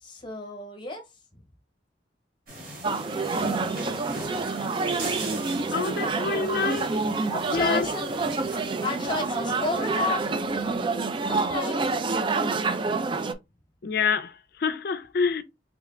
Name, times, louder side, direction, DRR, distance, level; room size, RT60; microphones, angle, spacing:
voice 1, 0.0-1.0 7.3-8.1 8.8-10.3 11.2-11.9, left 3 dB, 25° left, 1.0 m, -31 dB
sound 1, 2.5-11.3, right 1 dB, 50° right, 1.5 m, -41 dB
sound 2, 2.8-13.3, right 3 dB, 30° right, 0.3 m, -27 dB
voice 2, 5.7-7.0 7.5-7.9 13.8-15.4, left 5 dB, 55° left, 0.4 m, -27 dB
3.8 x 3.3 x 2.3 m
head